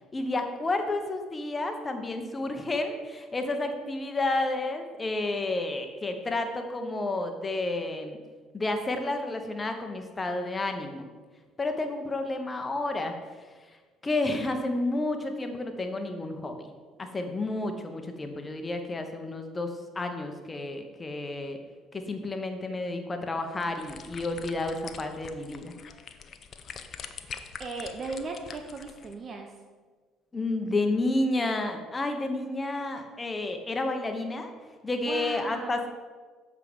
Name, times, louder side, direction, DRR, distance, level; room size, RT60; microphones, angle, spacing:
voice 1, 0.1-8.2 8.5-11.1 11.6-13.2 14.0-16.7 17.0-21.6 21.9-25.7 30.3-34.5 34.8-35.9, left 2 dB, 25° left, 5 dB, 1.2 m, -31 dB
sound 1, 23.4-29.1, left 6 dB, 50° left, 0.6 m, -44 dB
voice 2, 27.6-29.5 35.0-35.9, right 3 dB, 45° right, 4 dB, 0.8 m, -37 dB
7.5 x 4.8 x 5.4 m, 1.4 s
hypercardioid pair, 65°, 0 cm